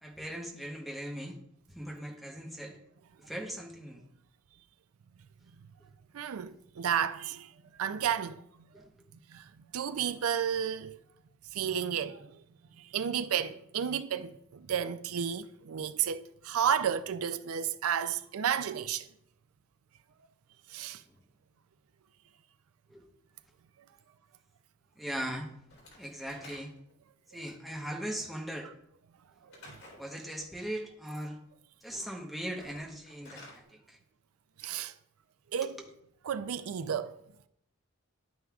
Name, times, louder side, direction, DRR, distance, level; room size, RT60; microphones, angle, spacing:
voice 1, 0.0-1.4 1.7-2.8 3.2-4.0 8.7-9.1 22.9-23.0 25.0-25.5 26.0-26.7 27.3-28.7 30.0-31.4 31.8-34.0 35.6-35.7, right 1 dB, ahead, 1.0 m, -39 dB
voice 2, 6.1-7.5 7.8-8.4 9.3-9.4 9.7-11.0 11.5-12.3 12.9-19.0 20.7-21.0 34.6-34.9 35.5-35.8 36.2-37.1, right 8 dB, 80° right, 0.4 m, -32 dB
Slam / Wood, 25.7-27.0 29.5-30.1 32.5-33.6, left 2 dB, 70° left, 3.8 m, -52 dB
10.5 x 9.2 x 2.4 m
head